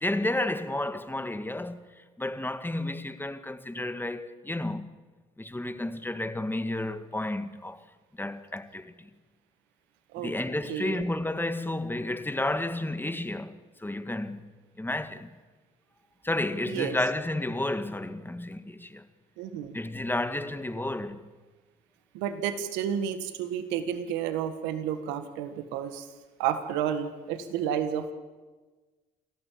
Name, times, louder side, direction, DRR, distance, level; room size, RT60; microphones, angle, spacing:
voice 1, 0.0-1.8 2.2-4.9 5.4-7.8 8.2-9.1 10.2-14.5 14.8-15.3 16.2-19.0 19.7-21.3, left 1 dB, 10° left, 1.9 m, -31 dB
voice 2, 10.7-11.0 16.7-17.0 19.4-19.7 22.1-26.1 26.4-28.1, right 9 dB, 90° right, 1.7 m, -31 dB
29.0 x 13.0 x 8.7 m
supercardioid pair, 60°, 18 cm